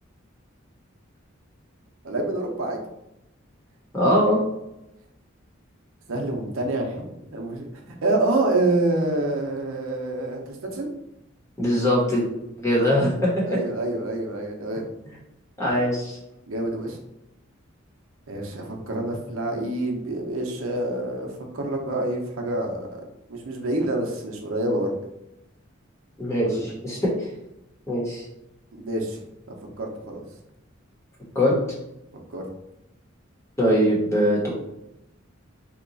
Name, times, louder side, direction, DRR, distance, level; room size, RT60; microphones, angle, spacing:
voice 1, 2.0-2.8 6.1-7.6 8.0-10.9 13.5-14.8 16.5-17.0 18.3-23.0 23.3-24.9 26.4-26.7 28.7-29.2 29.5-30.2 32.3-32.5, right 2 dB, 85° right, 1 dB, 0.7 m, -27 dB
voice 2, 3.9-4.4 11.6-12.3 12.6-13.6 15.6-16.2 26.2-27.3 27.9-28.2 31.3-31.5 33.6-34.5, equal, 15° left, -5 dB, 1.0 m, -22 dB
2.9 x 2.3 x 3.9 m, 0.87 s
head